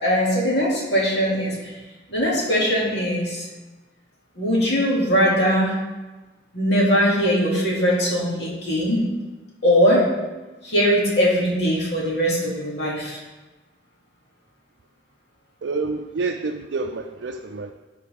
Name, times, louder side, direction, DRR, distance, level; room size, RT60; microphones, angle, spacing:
voice 1, 0.0-1.7 2.1-3.5 4.4-5.7 6.5-9.0 9.6-10.1 10.6-13.2, equal, 70° left, -5 dB, 2.6 m, -20 dB
voice 2, 15.6-17.7, right 3 dB, 80° right, 3 dB, 0.4 m, -28 dB
13.5 x 4.7 x 3.6 m, 1.2 s
head